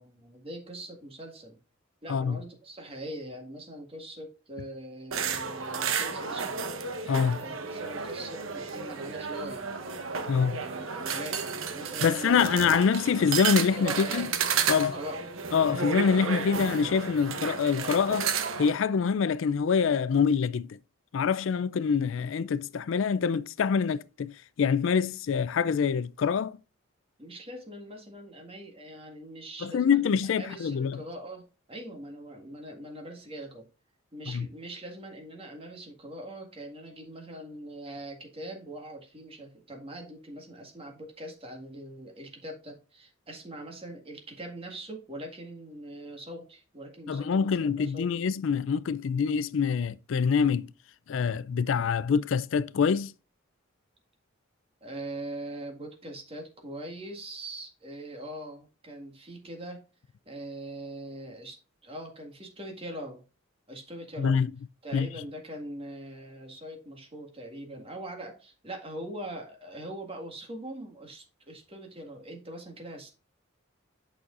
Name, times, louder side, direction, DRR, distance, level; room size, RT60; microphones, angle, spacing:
voice 1, 0.0-1.6 2.0-6.6 7.3-9.7 10.6-12.7 13.6-15.2 27.2-30.0 30.4-33.7 34.1-48.1 54.8-59.9 60.3-61.6 61.8-63.2 63.7-64.4 64.8-73.1, right 1 dB, 25° right, 1.8 m, -42 dB
sound 1, 5.1-18.7, right 6 dB, 75° right, 1.0 m, -32 dB
voice 2, 7.1-7.4 10.3-10.6 12.0-14.3 14.7-15.0 15.5-18.3 18.6-20.8 21.1-26.6 29.6-31.0 34.3-34.5 47.1-50.7 51.1-53.1 64.2-64.5 64.9-65.1, left 6 dB, 65° left, 0.4 m, -25 dB
8.5 x 6.2 x 2.5 m
head